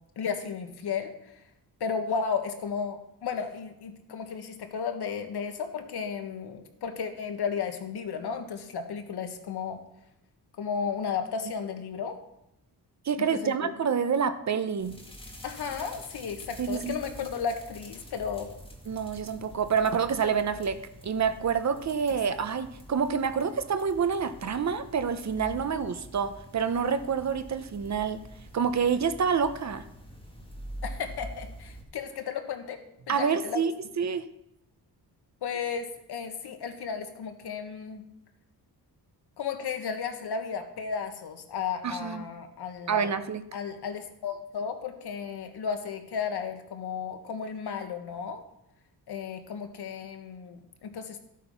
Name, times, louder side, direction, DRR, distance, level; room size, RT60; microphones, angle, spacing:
voice 1, 0.2-1.4 1.8-9.8 10.6-12.2 13.2-13.7 15.4-18.6 30.8-32.8 33.1-33.6 35.4-38.0 39.4-43.1 43.5-48.4 49.1-51.2, left 6 dB, 75° left, 6 dB, 1.7 m, -34 dB
voice 2, 13.0-14.9 16.6-16.9 17.2-17.3 18.9-28.2 28.5-29.8 33.1-34.2 41.8-42.2 42.9-43.4, right 6 dB, 45° right, 11 dB, 0.9 m, -28 dB
sound 1, 14.8-31.8, equal, 15° left, 2.0 m, -46 dB
14.0 x 8.4 x 5.7 m, 0.83 s
wide cardioid pair, 160°, 39 cm